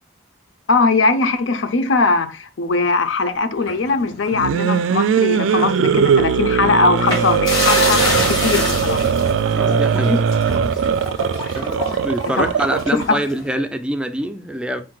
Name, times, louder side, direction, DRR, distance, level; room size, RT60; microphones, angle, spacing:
voice 1, 0.7-8.0 8.3-9.0 12.2-12.5 12.9-13.2, left 3 dB, 85° left, 0.6 m, -20 dB
sound 1, 3.6-5.2 5.5-5.7 7.0-13.5, left 2 dB, 25° left, 2.1 m, -26 dB
sound 2, 4.3-13.0, right 6 dB, 85° right, 0.3 m, -19 dB
voice 2, 9.5-10.3 10.7-10.8 11.5-14.8, right 1 dB, 5° right, 0.3 m, -25 dB
7.4 x 2.6 x 2.3 m
head